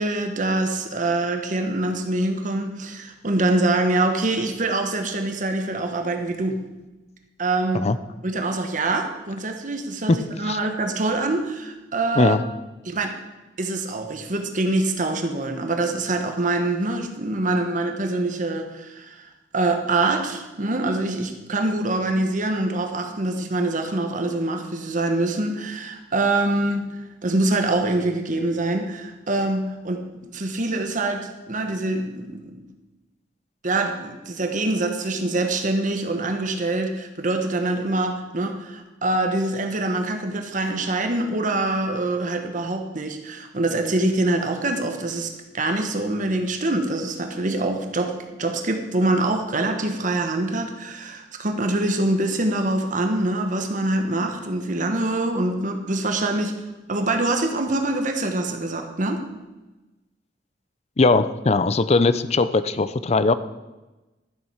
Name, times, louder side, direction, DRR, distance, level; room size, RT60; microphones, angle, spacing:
voice 1, 0.0-6.6 7.4-7.9 8.2-12.4 12.8-13.1 13.6-19.3 19.5-26.9 27.2-30.0 30.3-32.7 33.6-56.5 56.9-59.3, right 2 dB, 45° right, 5 dB, 1.1 m, -24 dB
voice 2, 61.0-63.3, left 3 dB, 35° left, 14 dB, 0.5 m, -19 dB
12.0 x 7.8 x 5.7 m, 1.1 s
head